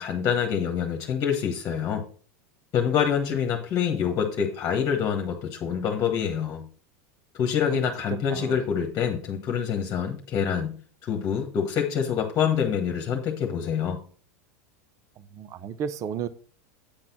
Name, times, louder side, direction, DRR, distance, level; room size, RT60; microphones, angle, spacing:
voice 1, 0.0-2.0 2.7-6.7 7.3-14.0, left 7 dB, 40° left, 1.5 m, -26 dB
voice 2, 15.3-16.3, right 7 dB, 40° right, 0.7 m, -32 dB
8.7 x 4.1 x 5.9 m
hypercardioid pair, 100°, 8 cm